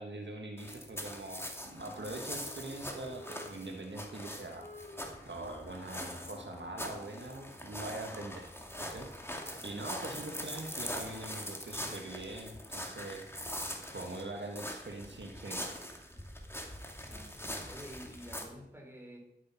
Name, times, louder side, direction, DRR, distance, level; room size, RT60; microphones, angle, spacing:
voice 1, 0.0-4.7 5.2-8.4 8.7-9.1 9.6-13.2 13.9-15.7, right 2 dB, 75° right, 3 dB, 1.5 m, -43 dB
sound 1, 0.6-18.4, equal, 15° left, 2.4 m, -43 dB
Wind instrument woodwind instrument, 1.6-7.4, left 3 dB, 40° left, 3.3 m, -53 dB
voice 2, 11.1-11.5 15.1-15.2 16.1-16.2 17.0-19.2, equal, 10° right, 0 dB, 4.3 m, -51 dB
12.0 x 8.3 x 5.7 m, 0.81 s
cardioid pair, 40°, 19 cm